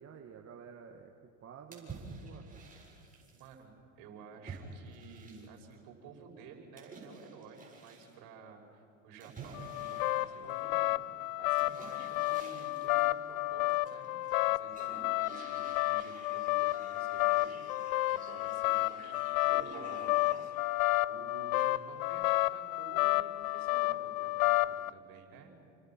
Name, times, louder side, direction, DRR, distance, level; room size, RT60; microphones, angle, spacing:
voice 1, 0.0-2.6, right 6 dB, 35° right, 3 dB, 1.8 m, -51 dB
sound 1, 1.7-3.5 4.5-5.7 6.8-8.1 9.2-10.9 11.6-13.1 13.7-14.4 14.7-20.7, right 3 dB, 20° right, 7.7 m, -50 dB
voice 2, 3.3-20.8 21.1-25.5, right 5 dB, 60° right, 2 dB, 5.8 m, -53 dB
sound 2, 9.5-24.9, left 19 dB, 85° left, 0.6 m, -31 dB
29.0 x 25.5 x 6.0 m, 2.4 s
supercardioid pair, 95°, 39 cm